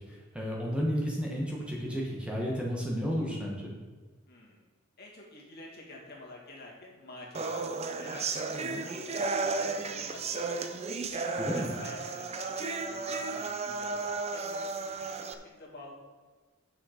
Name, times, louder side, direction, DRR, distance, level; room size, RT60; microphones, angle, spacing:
voice 1, 0.0-3.7 11.4-11.7, equal, 5° right, -3 dB, 1.5 m, -32 dB
voice 2, 4.3-4.6 5.0-7.7 7.9-10.7 11.1-15.9, left 2 dB, 50° left, -2 dB, 2.3 m, -49 dB
sound 1, 7.3-15.3, right 3 dB, 30° right, 0.6 m, -34 dB
9.0 x 6.4 x 5.0 m, 1.4 s
head